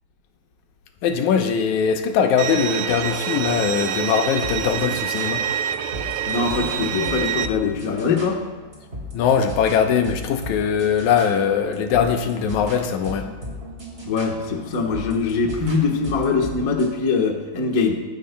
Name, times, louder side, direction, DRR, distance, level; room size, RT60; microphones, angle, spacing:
voice 1, 1.0-5.4 9.1-13.3, left 7 dB, 80° left, 5 dB, 2.3 m, -21 dB
Bowed string instrument, 2.4-7.5, right 10 dB, 80° right, 1.9 m, -26 dB
sound 1, 2.5-16.9, left 1 dB, 25° right, 3.0 m, -37 dB
voice 2, 6.3-8.4 14.0-17.9, left 4 dB, 45° left, 1 dB, 1.2 m, -22 dB
22.5 x 11.0 x 2.3 m, 1.5 s
omnidirectional pair, 3.4 m